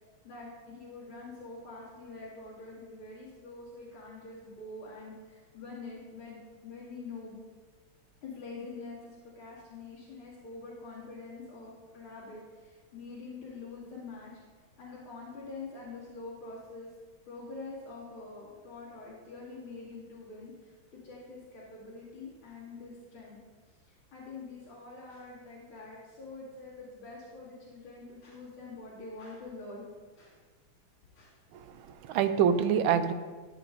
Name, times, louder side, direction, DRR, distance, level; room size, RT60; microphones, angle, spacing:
voice 1, 0.2-7.4 8.2-14.4 14.8-16.9 17.3-23.4 23.7-29.8 30.2-30.4 31.1-31.4 32.1-32.3, left 3 dB, 80° left, -10 dB, 2.9 m, -45 dB
voice 2, 31.5-33.1, right 8 dB, 80° right, 10 dB, 1.4 m, -26 dB
13.5 x 7.8 x 2.6 m, 1.4 s
omnidirectional pair, 2.3 m